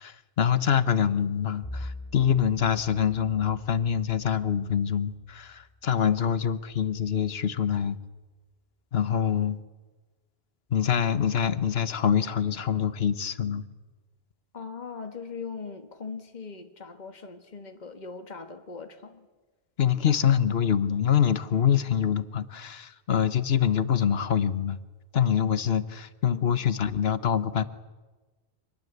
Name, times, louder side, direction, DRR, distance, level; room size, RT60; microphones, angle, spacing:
voice 1, 0.0-8.0 8.9-9.6 10.7-13.6 19.8-24.8 25.1-27.6, left 8 dB, 75° left, 1.3 m, -25 dB
Bowed string instrument, 1.6-6.2, left 1 dB, 25° left, 2.8 m, -44 dB
voice 2, 14.5-19.3 26.3-26.8, left 5 dB, 45° left, 1.7 m, -40 dB
26.0 x 20.0 x 8.1 m
omnidirectional pair, 1.0 m